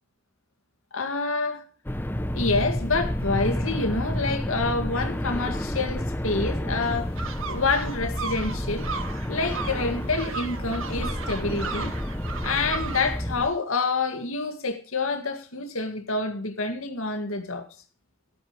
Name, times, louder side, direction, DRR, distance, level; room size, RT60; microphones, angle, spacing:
voice 1, 0.9-1.6 2.3-8.9 9.3-11.9 12.4-17.7, left 3 dB, 80° left, 2.1 m, -27 dB
sound 1, 1.8-13.5, left 1 dB, 10° left, 0.6 m, -30 dB
sound 2, 6.8-13.2, right 5 dB, 75° right, 1.7 m, -36 dB
13.5 x 13.0 x 3.2 m
head